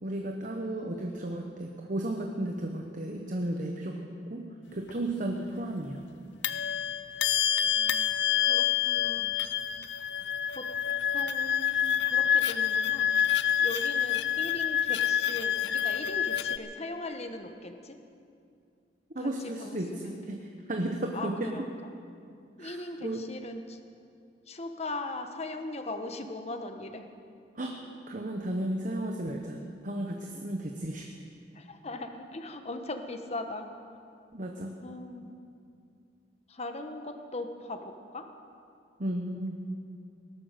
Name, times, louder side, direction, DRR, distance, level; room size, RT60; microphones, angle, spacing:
voice 1, 0.0-6.0 19.1-21.5 22.6-23.3 27.5-31.1 34.3-34.8 39.0-39.6, right 1 dB, 45° right, 2 dB, 1.1 m, -34 dB
sound 1, 4.9-5.0 6.4-16.6, left 9 dB, 70° left, 0.6 m, -27 dB
voice 2, 7.7-9.3 10.5-10.6 11.1-18.0 19.2-20.5 21.1-21.9 22.6-23.8 24.5-27.1 30.3-30.4 31.5-33.8 34.8-35.3 36.5-38.3, left 2 dB, 35° left, 6 dB, 1.2 m, -40 dB
18.0 x 12.0 x 6.7 m, 2.4 s
head